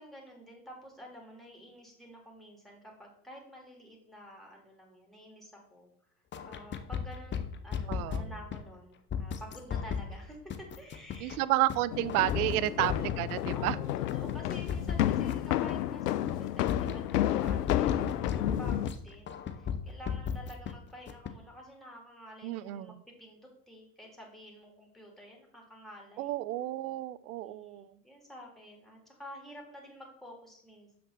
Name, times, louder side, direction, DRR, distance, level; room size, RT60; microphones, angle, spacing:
voice 1, 0.0-5.9 6.4-11.4 13.5-26.4 27.4-31.0, equal, ahead, -1 dB, 3.4 m, -50 dB
sound 1, 6.3-8.6 9.1-10.1 10.5-11.4 11.7-11.8 12.1-13.4 13.7-15.8 16.1-16.4 16.7-19.0 19.3-20.7 21.1-21.3, left 7 dB, 25° left, 0.8 m, -35 dB
voice 2, 7.9-8.3 11.2-13.7 22.4-22.9 26.2-27.8, right 16 dB, 65° right, 17 dB, 0.7 m, -31 dB
sound 2, 11.9-18.9, left 13 dB, 80° left, 0.6 m, -31 dB
7.6 x 6.9 x 4.1 m, 0.71 s
hypercardioid pair, 85°, 47 cm